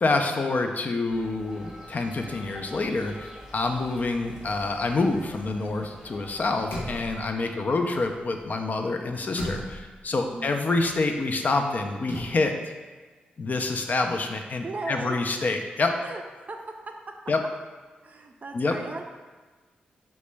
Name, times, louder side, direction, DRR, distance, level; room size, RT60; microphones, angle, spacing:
voice 1, 0.0-3.3 3.5-12.5 13.4-16.0 17.3-17.4 18.5-18.7, left 3 dB, 45° left, 4 dB, 0.3 m, -27 dB
sound 1, 1.1-7.3, equal, 10° right, 0.9 m, -45 dB
sound 2, 4.9-6.1 6.4-8.6 8.9-12.3, left 1 dB, 70° left, 0.7 m, -39 dB
voice 2, 7.5-7.9 10.3-10.5 14.6-15.2 16.0-16.2 16.5-16.7 18.0-19.0, right 3 dB, 40° right, 4 dB, 0.4 m, -37 dB
2.9 x 2.1 x 3.2 m, 1.3 s
supercardioid pair, 40°, 4 cm